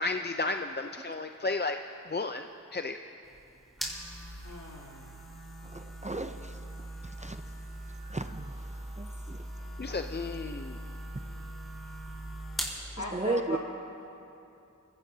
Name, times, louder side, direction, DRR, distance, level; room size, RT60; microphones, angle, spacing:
voice 1, 0.0-1.8 2.1-2.4 2.7-3.0 9.8-10.8, left 3 dB, 35° left, 6 dB, 0.5 m, -33 dB
sound 1, 3.2-12.8, right 1 dB, ahead, 4.2 m, -41 dB
voice 2, 4.4-5.1 13.0-13.6, left 1 dB, 60° left, -3 dB, 3.2 m, -38 dB
voice 3, 5.7-6.4 7.2-7.4 8.1-8.5 9.0-9.4 13.1-13.6, right 2 dB, 20° right, 7 dB, 0.5 m, -33 dB
26.0 x 16.5 x 2.8 m, 2.8 s
wide cardioid pair, 50°, 32 cm